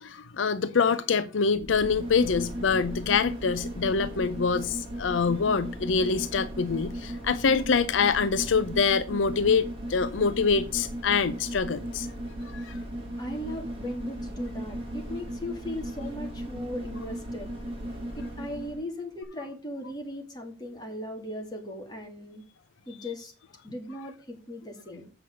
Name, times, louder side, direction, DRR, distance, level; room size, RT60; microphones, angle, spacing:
voice 1, 0.0-12.1 12.5-12.8, left 5 dB, 75° left, 0.5 m, -25 dB
sound 1, 1.5-18.8 19.2-19.3, right 1 dB, 30° right, 3.1 m, -36 dB
voice 2, 13.2-17.5 18.2-22.4 22.9-23.3 23.6-25.1, left 1 dB, 20° left, 2.6 m, -38 dB
7.9 x 6.0 x 6.4 m
head